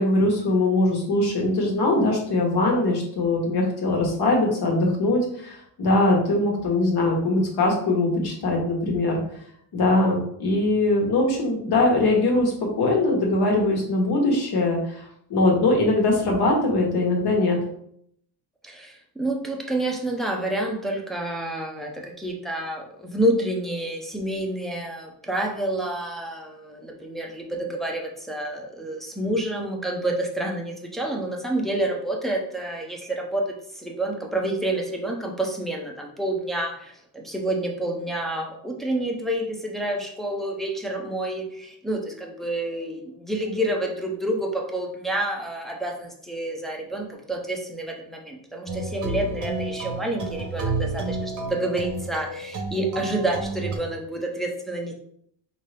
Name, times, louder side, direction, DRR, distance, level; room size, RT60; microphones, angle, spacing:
voice 1, 0.0-9.2 9.7-17.6, left 2 dB, 50° left, -1 dB, 1.4 m, -22 dB
voice 2, 18.6-54.9, right 1 dB, ahead, 0 dB, 0.4 m, -28 dB
sound 1, 48.7-53.8, right 3 dB, 35° right, 0.8 m, -31 dB
5.2 x 2.7 x 3.3 m, 0.68 s
cardioid pair, 170°, 50 cm